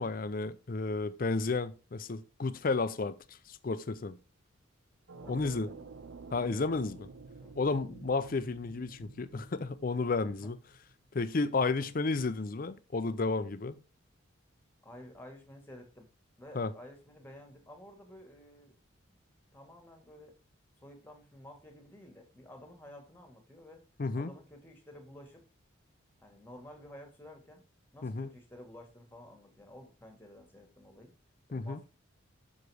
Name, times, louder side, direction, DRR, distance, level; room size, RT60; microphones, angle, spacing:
voice 1, 0.0-3.1 3.5-4.2 5.3-5.7 6.3-7.0 7.6-10.6 11.1-13.8 16.5-16.7 24.0-24.3 28.0-28.3 31.5-31.8, left 3 dB, 40° left, 0.5 m, -32 dB
sound 1, 5.1-10.9, right 4 dB, 65° right, 0.5 m, -50 dB
voice 2, 5.2-5.8 6.3-7.0 7.4-7.7 10.0-10.5 11.7-11.9 14.8-16.1 16.4-18.7 19.5-20.4 20.8-23.8 24.1-25.4 26.2-27.6 27.9-31.1 31.5-31.8, left 1 dB, 10° left, 1.6 m, -52 dB
6.5 x 4.8 x 4.7 m
head